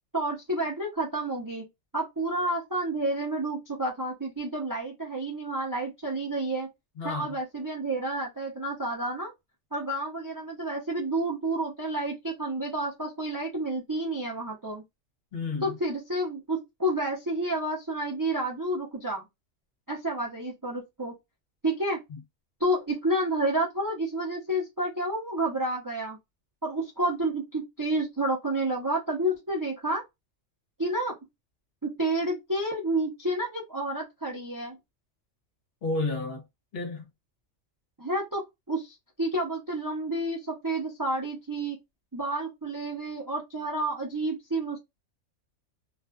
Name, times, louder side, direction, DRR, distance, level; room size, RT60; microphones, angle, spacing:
voice 1, 0.1-1.6 1.9-6.7 7.0-9.3 9.7-14.8 15.6-19.2 19.9-21.1 21.6-22.0 22.6-26.2 26.6-30.0 30.8-31.1 31.8-34.8 38.0-38.4 38.7-41.8 42.1-44.8, right 1 dB, 25° right, 0.4 m, -30 dB
voice 2, 7.0-7.3 15.3-15.8 22.1-22.2 35.8-36.4 36.7-37.1, left 3 dB, 55° left, 0.9 m, -31 dB
2.4 x 2.3 x 2.2 m
omnidirectional pair, 1.3 m